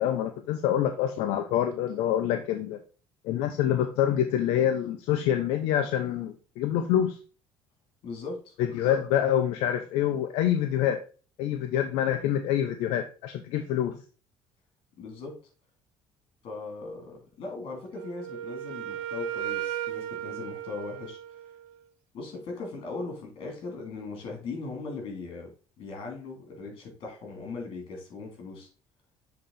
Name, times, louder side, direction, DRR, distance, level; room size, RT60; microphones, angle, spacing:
voice 1, 0.0-2.8 3.2-7.2 8.6-11.0 11.4-13.9, left 10 dB, 80° left, 7 dB, 0.7 m, -26 dB
voice 2, 8.0-8.5 15.0-15.4 16.4-21.2 22.1-28.7, left 3 dB, 60° left, 2 dB, 3.2 m, -39 dB
Wind instrument woodwind instrument, 17.9-21.8, right 12 dB, 85° right, 0.5 m, -36 dB
7.4 x 3.9 x 4.2 m, 0.37 s
cardioid pair, 105°, 10 cm